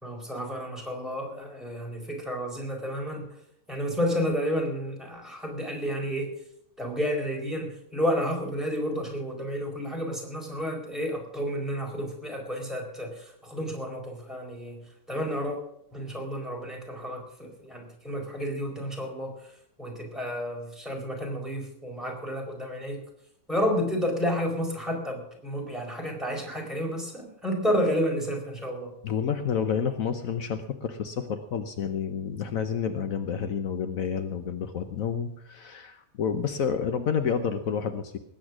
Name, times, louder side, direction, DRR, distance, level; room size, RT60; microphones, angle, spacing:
voice 1, 0.0-3.3 3.7-6.3 6.8-14.8 15.1-15.6 15.9-19.5 19.8-23.0 23.5-29.0, equal, ahead, 0 dB, 4.4 m, -31 dB
voice 2, 29.0-38.2, left 7 dB, 70° left, 9 dB, 1.3 m, -29 dB
19.5 x 9.2 x 6.1 m, 0.74 s
omnidirectional pair, 1.5 m